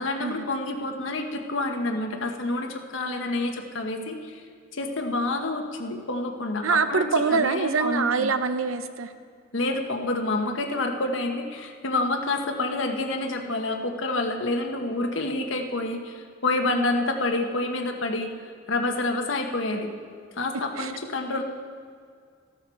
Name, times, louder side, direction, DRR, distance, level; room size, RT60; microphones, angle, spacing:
voice 1, 0.0-4.4 4.7-8.3 9.5-18.3 18.7-19.9 20.4-21.4, left 2 dB, 75° left, 3 dB, 1.2 m, -28 dB
voice 2, 6.6-9.1 16.7-16.9 20.8-20.9, right 5 dB, 90° right, 11 dB, 0.7 m, -25 dB
14.5 x 12.5 x 4.6 m, 2.1 s
head